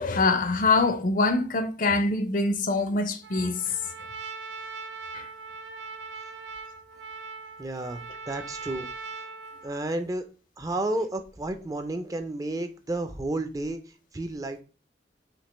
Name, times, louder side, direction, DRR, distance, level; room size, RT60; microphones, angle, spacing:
voice 1, 0.0-3.8 5.1-5.2, left 3 dB, 45° left, 0.5 m, -24 dB
Trumpet, 3.2-10.0, right 4 dB, 80° right, 0.6 m, -40 dB
voice 2, 7.6-8.9 9.6-10.2 10.6-13.8 14.1-14.6, right 2 dB, 20° right, 0.4 m, -31 dB
5.2 x 2.9 x 3.0 m
head